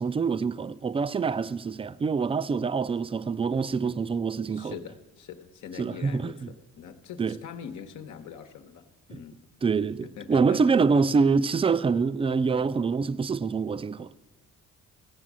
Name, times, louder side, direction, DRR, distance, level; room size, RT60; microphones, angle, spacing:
voice 1, 0.0-4.8 5.8-6.3 7.2-7.4 9.1-9.2 9.6-14.2, right 5 dB, 20° right, 0.4 m, -25 dB
voice 2, 4.5-9.5 10.0-10.8, left 8 dB, 75° left, 1.1 m, -43 dB
15.0 x 7.1 x 7.5 m
cardioid pair, 90°, 30 cm